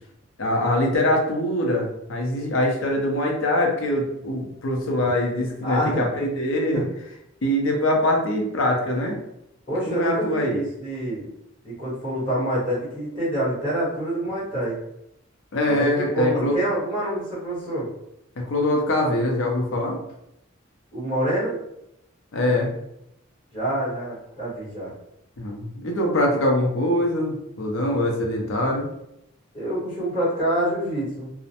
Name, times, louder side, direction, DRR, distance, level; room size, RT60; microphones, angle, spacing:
voice 1, 0.4-6.8 7.4-9.2 9.9-10.6 15.5-16.6 18.4-20.0 22.3-22.7 25.4-28.9, left 1 dB, 70° left, 1 dB, 0.6 m, -23 dB
voice 2, 5.6-6.0 6.7-6.8 9.7-11.2 11.6-14.8 15.6-17.9 20.9-21.6 23.5-24.9 29.5-31.3, right 1 dB, 25° left, -10 dB, 1.3 m, -26 dB
2.4 x 2.0 x 2.8 m, 0.81 s
head